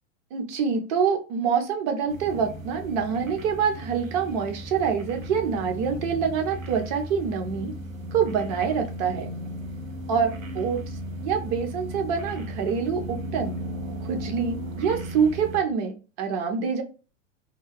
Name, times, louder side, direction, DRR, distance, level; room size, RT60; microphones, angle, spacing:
voice 1, 0.3-7.7 8.1-9.3 10.1-10.8 11.2-13.6 14.0-16.8, right 6 dB, 35° right, 5 dB, 0.5 m, -26 dB
sound 1, 2.1-15.6, equal, 90° right, 0.6 m, -36 dB
2.3 x 2.2 x 3.2 m, 0.34 s
figure-of-eight pair, 95°, 40 cm